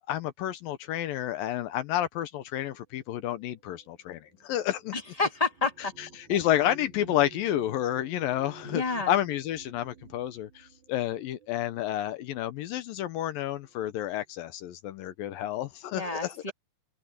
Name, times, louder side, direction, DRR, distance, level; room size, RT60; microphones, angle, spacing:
voice 1, 0.1-4.9 6.0-16.4, left 12 dB, 75° left, 2.2 m, -30 dB
sound 1, 3.2-12.1 13.0-13.2 13.5-14.1, right 3 dB, 45° right, 3.9 m, -52 dB
voice 2, 4.9-5.9 6.3-6.4 8.7-9.1 15.9-16.5, left 3 dB, 25° left, 0.8 m, -30 dB
omnidirectional pair, 5.1 m